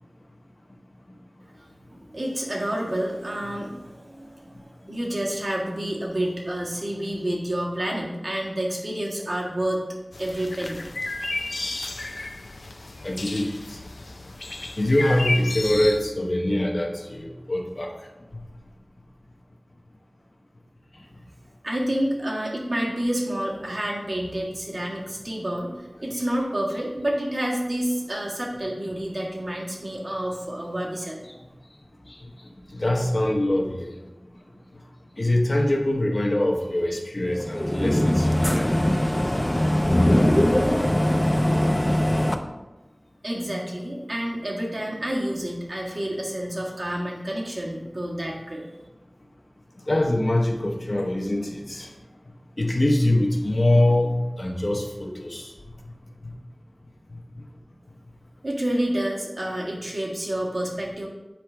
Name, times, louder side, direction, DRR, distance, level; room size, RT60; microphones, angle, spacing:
voice 1, 1.9-4.6 4.9-9.8 10.2-10.8 21.6-31.3 43.2-48.6 58.4-61.1, right 1 dB, 65° right, -3 dB, 1.5 m, -29 dB
sound 1, 10.1-16.0, left 2 dB, 80° left, 0.5 m, -32 dB
voice 2, 13.0-13.8 14.8-17.9 32.1-32.2 32.7-33.9 35.2-38.7 49.9-51.9 52.6-55.5, left 1 dB, 55° left, 0 dB, 1.0 m, -23 dB
sound 2, 37.3-42.4, left 1 dB, 20° left, 0.5 m, -21 dB
7.5 x 4.7 x 3.3 m, 1.0 s
wide cardioid pair, 45°, 0 cm